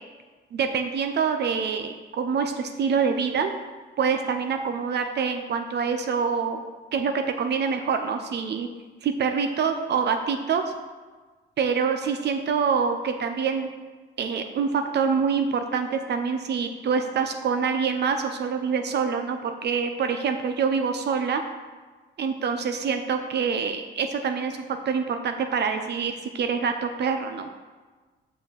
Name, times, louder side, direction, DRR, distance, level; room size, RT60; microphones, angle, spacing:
voice 1, 0.5-3.5 4.0-6.6 6.9-8.7 9.0-10.6 11.6-13.7 14.2-21.4 22.2-24.6 24.9-27.6, right 6 dB, 60° right, 6 dB, 0.7 m, -26 dB
5.8 x 5.0 x 6.6 m, 1.3 s
cardioid pair, 90°, 20 cm